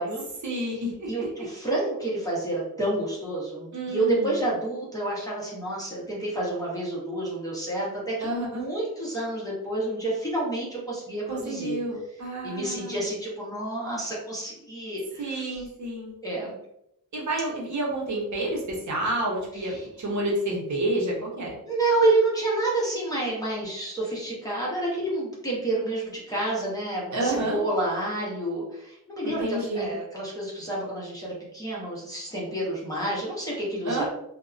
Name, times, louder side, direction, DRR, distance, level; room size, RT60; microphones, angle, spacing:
voice 1, 0.4-1.5 3.7-4.3 8.2-8.7 11.3-13.0 15.2-16.1 17.1-21.6 27.1-27.6 29.2-29.9 33.8-34.0, right 1 dB, 55° right, -3 dB, 0.7 m, -29 dB
voice 2, 1.1-11.8 12.4-15.5 16.2-16.6 19.6-19.9 21.6-34.0, right 2 dB, 10° left, -6 dB, 0.7 m, -29 dB
2.5 x 2.1 x 2.4 m, 0.78 s
wide cardioid pair, 130°, 36 cm